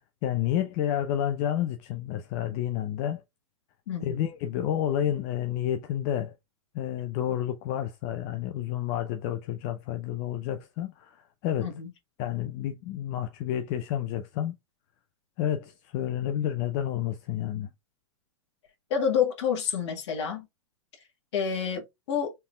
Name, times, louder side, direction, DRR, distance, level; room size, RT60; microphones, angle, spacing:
voice 1, 0.2-3.2 4.0-6.3 6.7-11.7 12.2-14.6 15.4-17.7, left 11 dB, 40° left, 0.6 m, -30 dB
voice 2, 3.9-4.3 11.6-11.9 18.9-20.5 21.3-22.3, left 7 dB, 60° left, 1.7 m, -28 dB
4.3 x 3.5 x 2.3 m
hypercardioid pair, 110°, 17 cm